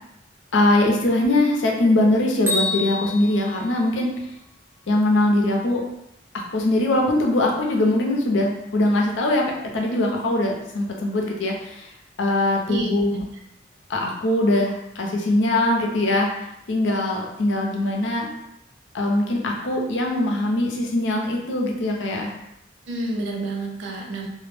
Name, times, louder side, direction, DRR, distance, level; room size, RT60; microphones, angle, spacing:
voice 1, 0.5-4.1 4.9-5.8 6.3-9.4 9.7-11.9 12.2-13.1 13.9-16.3 16.7-18.3 18.9-22.3, left 1 dB, 75° left, 0 dB, 0.5 m, -21 dB
Bell, 2.5-4.5, left 2 dB, 10° right, 0.4 m, -29 dB
voice 2, 12.7-13.2 22.9-24.3, right 2 dB, 75° right, 0 dB, 0.5 m, -29 dB
2.2 x 2.0 x 3.1 m, 0.83 s
head